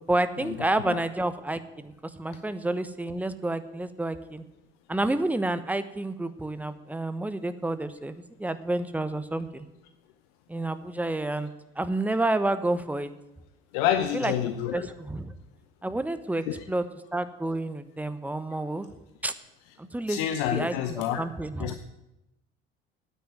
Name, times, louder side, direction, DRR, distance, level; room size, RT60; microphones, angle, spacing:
voice 1, 0.1-1.9 2.2-4.4 4.9-9.6 10.5-11.5 11.8-13.1 14.1-14.3 14.7-15.3 15.8-16.9 17.1-18.9 19.2-19.3 19.9-20.2 20.5-21.8, right 2 dB, 5° right, 12 dB, 1.0 m, -29 dB
voice 2, 13.7-14.9 16.5-16.6 20.1-21.2 21.6-21.8, left 10 dB, 65° left, 9 dB, 0.9 m, -28 dB
9.2 x 9.0 x 9.3 m, 0.93 s
figure-of-eight pair, 60°, 30 cm